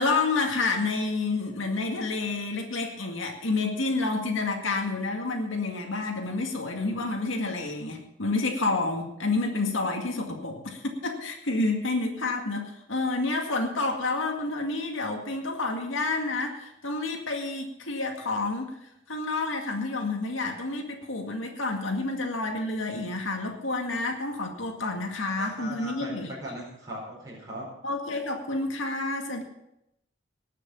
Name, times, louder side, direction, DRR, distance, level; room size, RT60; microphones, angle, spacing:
voice 1, 0.0-18.7 19.1-26.3 27.8-29.4, left 3 dB, 85° left, 3 dB, 2.0 m, -29 dB
voice 2, 25.3-27.7, right 1 dB, 20° right, -5 dB, 4.5 m, -39 dB
19.0 x 6.6 x 7.2 m, 0.82 s
head